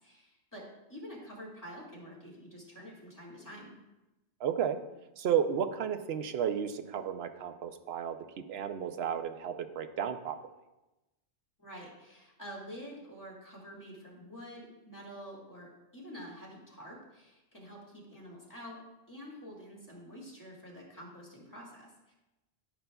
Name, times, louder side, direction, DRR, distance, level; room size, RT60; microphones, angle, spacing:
voice 1, 0.0-3.8 11.6-18.8 19.1-22.1, equal, 15° left, -5 dB, 1.9 m, -48 dB
voice 2, 4.4-4.8 5.2-8.2 8.5-10.4, right 8 dB, 70° right, 9 dB, 0.8 m, -32 dB
13.0 x 5.3 x 2.3 m, 1.0 s
omnidirectional pair, 1.1 m